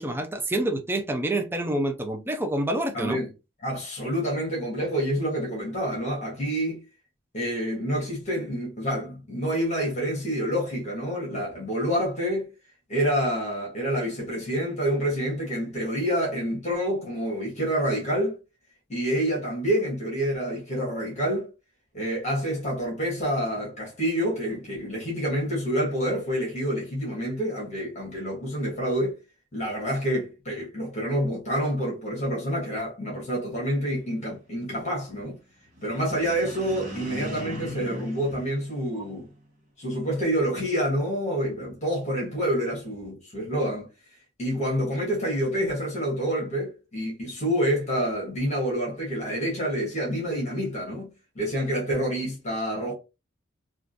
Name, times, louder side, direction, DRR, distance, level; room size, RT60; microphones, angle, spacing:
voice 1, 0.0-3.2, right 1 dB, 10° right, 0.4 m, -27 dB
voice 2, 2.9-3.3 3.6-6.8 7.3-12.5 12.9-18.4 18.9-21.5 21.9-29.2 29.5-35.4 35.8-39.3 39.8-43.9 44.4-52.9, equal, 35° left, 1.4 m, -28 dB
sound 1, 35.7-39.3, equal, 40° right, 1.1 m, -38 dB
3.6 x 2.5 x 2.5 m
head